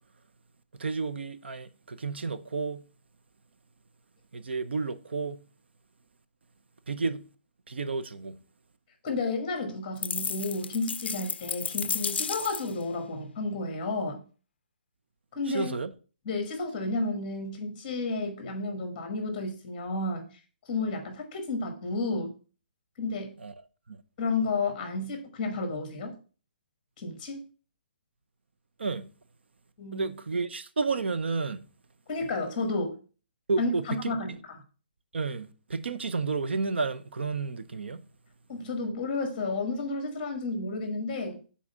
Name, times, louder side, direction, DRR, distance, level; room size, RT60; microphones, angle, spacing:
voice 1, 0.8-2.9 4.3-5.5 6.9-7.3 7.7-8.4 15.5-15.9 23.4-23.5 23.9-24.0 28.8-29.1 29.9-31.6 33.5-34.1 35.1-38.0, right 4 dB, 85° right, 0.7 m, -31 dB
voice 2, 9.0-14.2 15.3-15.8 16.2-20.3 20.7-22.3 23.0-23.3 24.2-26.2 27.0-27.4 29.8-30.1 32.1-33.0 33.6-34.3 38.5-41.4, left 3 dB, 20° left, 1.2 m, -31 dB
sound 1, 10.0-12.8, left 6 dB, 80° left, 0.3 m, -33 dB
6.1 x 4.1 x 5.4 m
hypercardioid pair, 180°, 6 cm